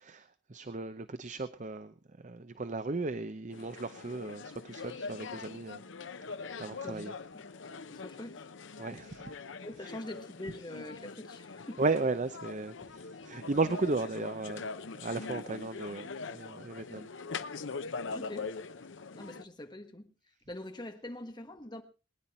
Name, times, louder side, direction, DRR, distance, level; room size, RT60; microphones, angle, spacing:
voice 1, 0.0-1.9 2.2-5.8 6.6-7.1 8.8-9.3 9.8-9.9 11.8-14.7 14.9-17.1, right 3 dB, 40° right, 0.7 m, -35 dB
sound 1, 3.5-19.4, left 4 dB, 70° left, 0.8 m, -43 dB
voice 2, 6.6-7.1 7.9-8.4 9.6-11.8 15.4-15.5 18.1-18.5 19.1-20.1 20.5-21.8, left 1 dB, 20° left, 1.4 m, -44 dB
21.0 x 10.0 x 4.3 m
head